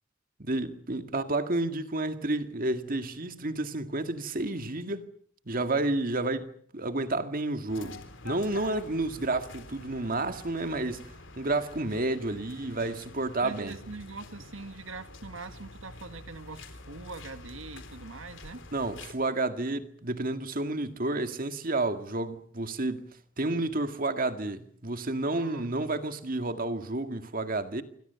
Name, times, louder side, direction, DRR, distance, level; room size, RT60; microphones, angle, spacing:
voice 1, 0.4-5.1 5.5-13.8 18.7-23.1 23.4-27.8, right 2 dB, 45° right, 2.0 m, -30 dB
sound 1, 7.7-19.1, left 2 dB, 65° left, 3.8 m, -47 dB
voice 2, 13.4-18.6 25.3-25.8, right 3 dB, 85° right, 1.8 m, -43 dB
27.0 x 24.5 x 7.0 m
head